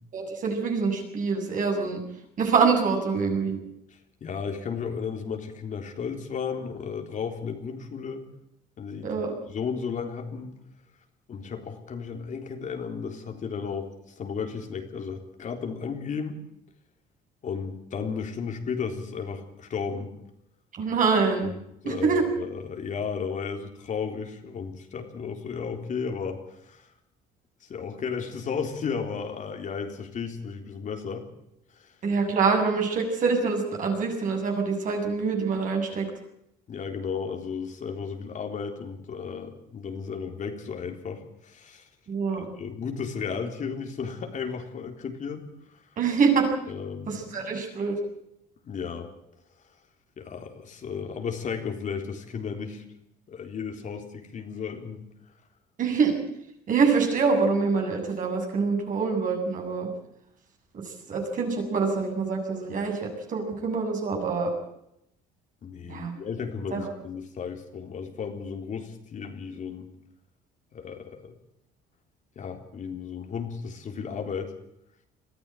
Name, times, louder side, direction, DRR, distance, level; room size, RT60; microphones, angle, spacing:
voice 1, 0.1-2.0 2.4-3.6 9.0-9.3 20.8-21.5 21.8-22.2 32.0-36.1 42.1-42.4 46.0-46.5 47.1-47.9 55.8-56.1 56.7-59.9 60.7-60.8 61.1-64.5 65.9-66.1 66.7-66.9, right 5 dB, 50° right, 2 dB, 7.5 m, -25 dB
voice 2, 4.2-8.3 8.8-10.5 11.3-13.9 14.2-16.4 17.4-20.2 21.4-21.6 21.8-26.9 27.6-31.3 31.7-31.9 36.7-41.8 42.3-45.4 45.7-45.8 46.7-47.2 48.6-49.1 50.2-52.8 53.3-55.1 65.6-69.9 70.7-71.3 72.4-74.5, left 6 dB, 45° left, 4 dB, 3.7 m, -34 dB
22.0 x 14.5 x 9.1 m, 0.79 s
cardioid pair, 110°, 17 cm